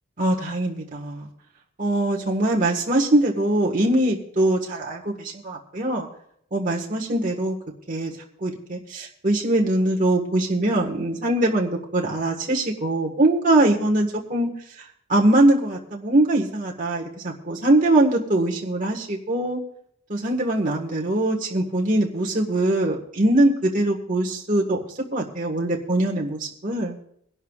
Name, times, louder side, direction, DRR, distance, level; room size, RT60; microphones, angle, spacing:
voice 1, 0.2-1.3 1.8-6.1 6.5-7.6 7.9-8.1 8.4-14.5 14.8-19.6 20.1-24.8 25.1-27.0, right 1 dB, 40° right, 0 dB, 1.6 m, -22 dB
23.5 x 12.0 x 2.4 m, 0.69 s
head